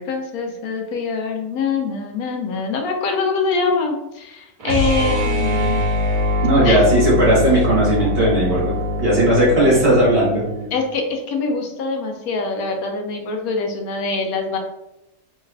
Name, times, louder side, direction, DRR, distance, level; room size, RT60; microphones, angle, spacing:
voice 1, 0.0-5.8 6.6-6.9 10.7-14.6, left 4 dB, 80° left, 3 dB, 1.1 m, -24 dB
sound 1, 4.6-10.7, left 1 dB, 85° right, 1.2 m, -22 dB
voice 2, 6.4-8.7 9.0-10.4, right 1 dB, 45° right, -5 dB, 1.3 m, -16 dB
3.2 x 2.3 x 3.2 m, 0.93 s
omnidirectional pair, 1.5 m